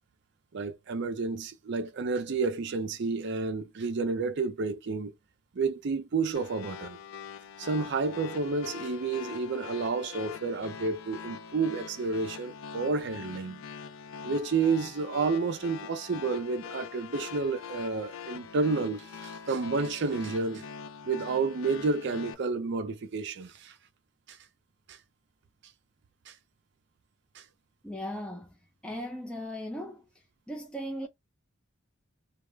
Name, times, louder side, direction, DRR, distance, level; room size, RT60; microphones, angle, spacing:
voice 1, 0.5-5.1 5.5-7.0 7.6-13.6 14.2-20.7 21.0-23.7 24.3-24.4 24.9-25.0 26.3-26.4 27.4-27.5, right 4 dB, 60° right, 0.5 m, -30 dB
sound 1, 6.3-22.3, left 7 dB, 75° left, 0.4 m, -43 dB
voice 2, 27.8-28.6 28.8-30.0 30.5-31.1, equal, 5° left, 0.4 m, -37 dB
2.3 x 2.0 x 3.2 m
head